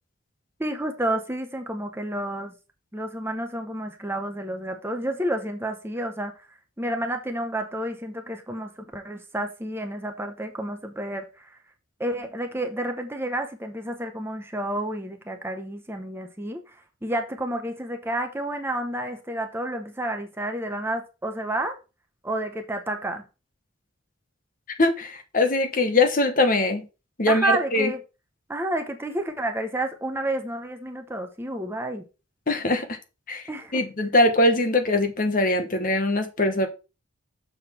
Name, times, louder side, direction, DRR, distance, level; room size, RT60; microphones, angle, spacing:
voice 1, 0.6-2.5 2.9-11.6 12.0-21.8 22.2-23.3 27.3-28.0 28.5-32.0 33.5-33.8, right 1 dB, 10° right, 0.8 m, -30 dB
voice 2, 24.8-26.8 27.2-27.9 32.5-32.9 33.3-36.7, left 2 dB, 40° left, 1.1 m, -22 dB
6.9 x 3.9 x 5.6 m
head